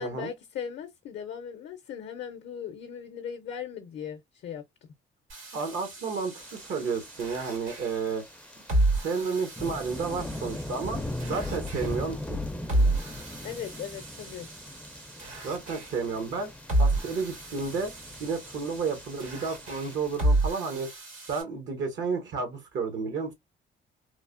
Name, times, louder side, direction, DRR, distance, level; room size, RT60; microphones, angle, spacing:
voice 1, 0.0-4.6 13.4-14.5, left 8 dB, 65° left, 0.5 m, -38 dB
sound 1, 5.3-21.4, right 1 dB, 85° right, 2.0 m, -32 dB
voice 2, 5.5-8.2 9.0-11.0 11.3-12.4 15.4-16.5 16.8-17.9 18.2-20.9 21.3-23.3, right 5 dB, 70° right, 0.8 m, -31 dB
sound 2, 6.4-20.2, left 1 dB, 5° left, 0.4 m, -40 dB
3.1 x 2.1 x 2.4 m
cardioid pair, 90°, 20 cm